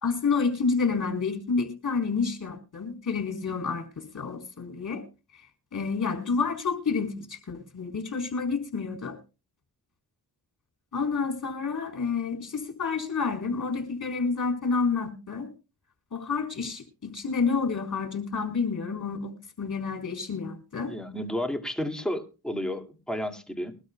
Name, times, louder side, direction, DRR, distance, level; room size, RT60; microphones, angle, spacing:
voice 1, 0.0-5.0 5.7-9.2 10.9-15.5 16.1-20.9, left 5 dB, 50° left, 4 dB, 4.0 m, -29 dB
voice 2, 20.9-23.8, left 1 dB, ahead, 4 dB, 2.2 m, -32 dB
22.5 x 12.5 x 2.2 m, 0.31 s
cardioid pair, 55°, 40 cm